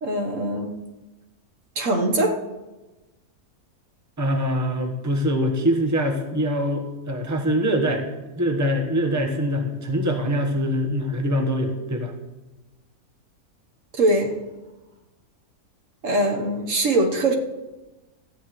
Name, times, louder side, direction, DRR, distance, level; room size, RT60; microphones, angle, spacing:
voice 1, 0.0-0.8 1.7-2.4 14.0-14.4 16.0-17.3, right 1 dB, 60° right, 2 dB, 1.6 m, -22 dB
voice 2, 4.2-8.0 8.3-12.1, equal, 10° right, 3 dB, 1.2 m, -23 dB
18.0 x 14.0 x 3.2 m, 1.1 s
omnidirectional pair, 1.6 m